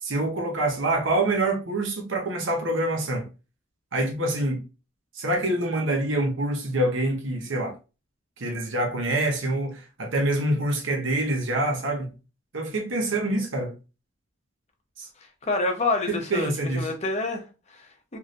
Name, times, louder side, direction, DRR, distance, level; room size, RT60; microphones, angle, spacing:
voice 1, 0.0-3.3 3.9-4.6 5.1-7.7 8.4-12.1 12.5-13.7 15.0-15.1 16.1-16.9, right 1 dB, 70° right, 0.9 m, -26 dB
voice 2, 15.4-18.2, left 3 dB, 30° left, 0.7 m, -28 dB
3.1 x 2.7 x 2.6 m
head